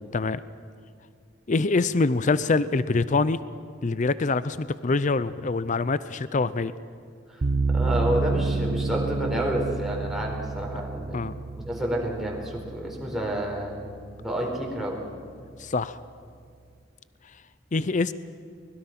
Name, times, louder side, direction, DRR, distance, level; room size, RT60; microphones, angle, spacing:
voice 1, 1.5-3.4 3.8-6.7 11.1-11.4 15.6-16.0 17.7-18.1, left 3 dB, 40° left, 15 dB, 0.5 m, -24 dB
sound 1, 7.4-14.5, right 3 dB, 55° right, 0.6 m, -29 dB
voice 2, 7.7-11.2 11.6-13.8 14.2-15.0, right 1 dB, ahead, -2 dB, 4.3 m, -29 dB
24.0 x 21.5 x 5.9 m, 2.2 s
head